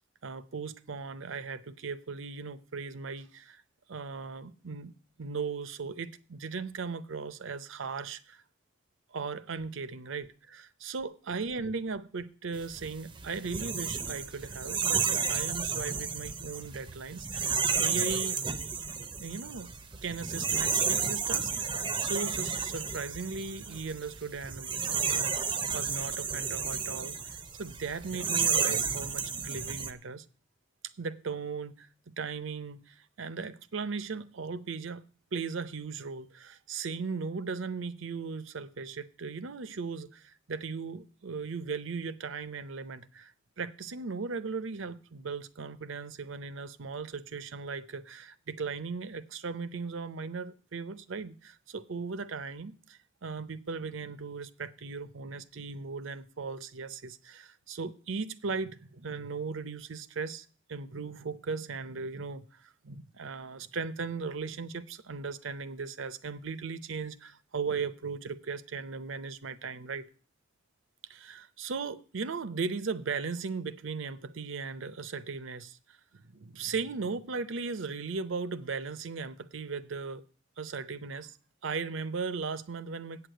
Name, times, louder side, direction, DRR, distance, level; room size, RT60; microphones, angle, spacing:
voice 1, 0.2-3.6 3.9-4.9 5.2-8.4 9.1-18.7 19.2-19.7 20.0-30.2 31.0-35.0 35.3-70.1 71.1-75.8 76.3-80.2 80.6-81.4 81.6-83.3, right 4 dB, 65° right, 0.6 m, -37 dB
sound 1, 12.6-29.9, right 6 dB, 20° right, 0.5 m, -32 dB
8.5 x 6.6 x 7.7 m
head